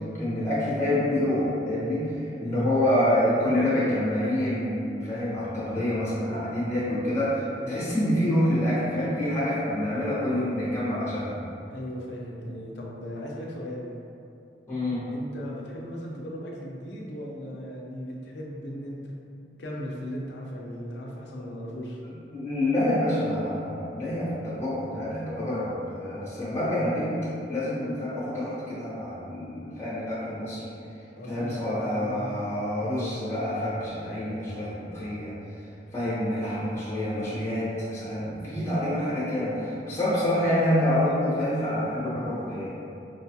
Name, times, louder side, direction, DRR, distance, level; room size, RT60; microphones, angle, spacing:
voice 1, 0.1-11.4 14.7-15.1 22.3-27.1 27.5-30.7 31.3-35.3 35.9-42.7, left 1 dB, 15° left, -9 dB, 0.8 m, -27 dB
voice 2, 2.3-2.9 7.6-7.8 11.7-13.9 15.1-19.1 19.6-22.0 31.1-32.4 42.0-42.2, equal, 70° left, -2 dB, 0.6 m, -37 dB
4.7 x 2.2 x 2.8 m, 2.7 s
head